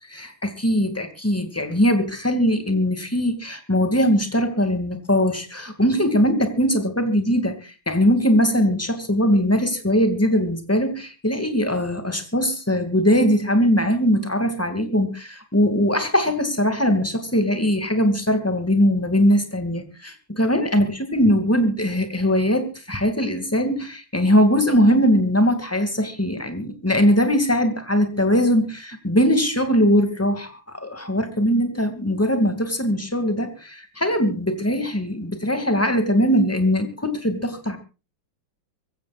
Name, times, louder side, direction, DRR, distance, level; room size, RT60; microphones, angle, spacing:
voice 1, 0.1-37.8, equal, 5° left, 8 dB, 2.4 m, -21 dB
24.0 x 15.5 x 2.5 m, 0.31 s
omnidirectional pair, 2.1 m